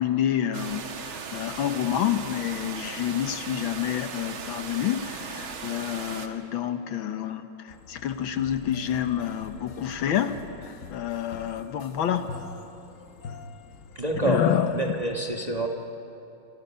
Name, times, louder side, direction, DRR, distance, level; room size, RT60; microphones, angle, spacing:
voice 1, 0.0-10.4 10.9-12.3 14.2-14.8, left 10 dB, 75° left, 9 dB, 1.8 m, -28 dB
sound 1, 0.5-6.3, right 6 dB, 75° right, 2.2 m, -38 dB
sound 2, 7.7-15.1, left 5 dB, 55° left, 1.0 m, -44 dB
voice 2, 13.9-15.7, right 2 dB, 20° right, 1 dB, 1.3 m, -28 dB
28.0 x 26.5 x 5.6 m, 2.9 s
omnidirectional pair, 2.2 m